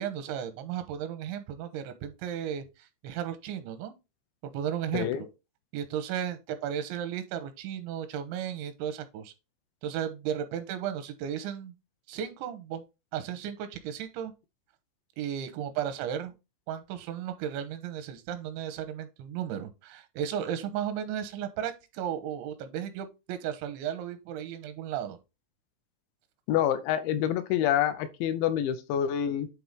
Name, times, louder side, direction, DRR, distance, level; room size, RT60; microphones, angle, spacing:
voice 1, 0.0-3.9 4.4-5.1 5.7-9.3 9.8-11.7 12.1-12.8 13.1-14.3 15.2-16.3 16.7-25.2, right 9 dB, 85° right, 3.2 m, -34 dB
voice 2, 4.9-5.3 26.5-29.5, left 10 dB, 80° left, 3.1 m, -27 dB
9.5 x 3.9 x 3.6 m
omnidirectional pair, 5.3 m